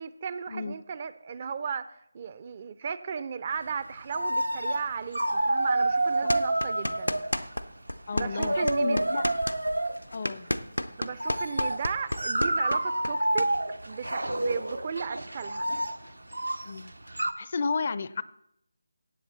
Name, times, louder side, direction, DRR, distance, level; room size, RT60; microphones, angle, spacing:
voice 1, 0.0-7.2 8.1-9.1 11.0-13.5 13.8-15.7, right 6 dB, 30° right, 15 dB, 0.4 m, -35 dB
sound 1, 3.8-3.9 4.1-4.9 5.1-7.6 8.1-10.0 11.1-17.3, right 1 dB, 75° right, 0.7 m, -28 dB
sound 2, 6.3-7.6 7.9-13.5, left 1 dB, 90° left, 0.6 m, -31 dB
voice 2, 8.1-9.2 10.1-10.5 16.7-16.9 17.4-18.2, left 4 dB, 40° left, 16 dB, 0.4 m, -32 dB
16.5 x 7.6 x 4.1 m, 0.75 s
figure-of-eight pair, 155°, 0 cm